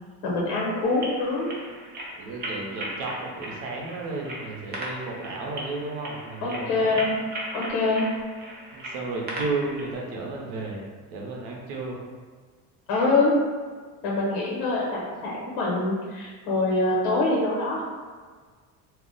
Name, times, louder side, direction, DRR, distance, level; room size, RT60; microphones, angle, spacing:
voice 1, 0.2-1.5 6.4-7.2 7.5-8.1 12.9-13.4 14.0-17.8, left 2 dB, 75° left, -4 dB, 1.0 m, -24 dB
sound 1, 0.8-10.0, right 1 dB, 25° right, 0.5 m, -38 dB
voice 2, 2.2-7.0 8.7-12.0, right 3 dB, 90° right, -1 dB, 0.8 m, -33 dB
2.4 x 2.0 x 3.7 m, 1.5 s
cardioid pair, 135°, 39 cm